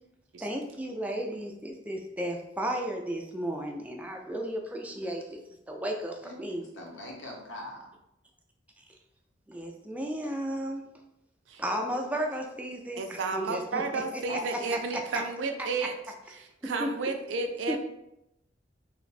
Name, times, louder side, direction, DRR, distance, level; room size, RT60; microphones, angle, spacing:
voice 1, 0.4-5.4 5.7-6.6 9.5-10.8 11.6-14.2 14.5-15.2 15.6-15.7 16.6-16.9 17.7-17.8, right 1 dB, 5° right, 2 dB, 0.3 m, -34 dB
voice 2, 6.7-7.9 14.3-14.4, left 2 dB, 85° left, 0 dB, 0.8 m, -40 dB
voice 3, 11.5-12.0 13.0-15.9 16.4-17.8, right 3 dB, 75° right, 5 dB, 0.4 m, -32 dB
2.6 x 2.2 x 3.9 m, 0.84 s
head